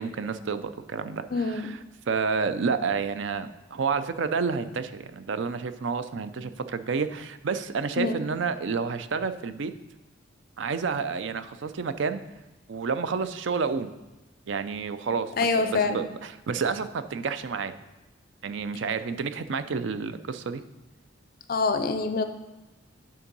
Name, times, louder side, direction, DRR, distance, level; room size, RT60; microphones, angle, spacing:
voice 1, 0.0-9.7 10.6-12.2 12.7-13.9 14.5-17.7 18.4-20.6, right 5 dB, 70° right, 11 dB, 0.4 m, -30 dB
voice 2, 1.3-1.7 8.0-8.2 15.4-16.0 21.5-22.2, left 4 dB, 45° left, 9 dB, 0.4 m, -25 dB
8.5 x 3.7 x 5.3 m, 1.1 s
head